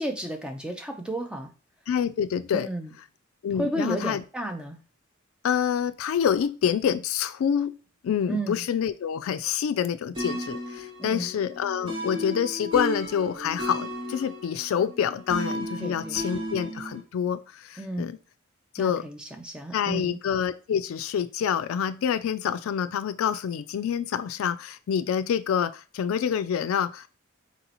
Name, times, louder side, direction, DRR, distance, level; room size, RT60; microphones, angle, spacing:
voice 1, 0.0-1.5 2.5-2.9 3.6-4.8 8.3-8.6 11.0-11.3 15.8-16.2 17.8-18.1 18.8-20.2, right 1 dB, 5° right, 4 dB, 0.6 m, -32 dB
voice 2, 1.9-2.7 3.4-4.2 5.4-7.8 8.0-18.1 18.7-19.0 19.7-27.1, left 8 dB, 90° left, 11 dB, 0.3 m, -27 dB
sound 1, 10.2-17.0, equal, 25° right, 1.0 m, -34 dB
4.2 x 2.9 x 4.0 m, 0.34 s
head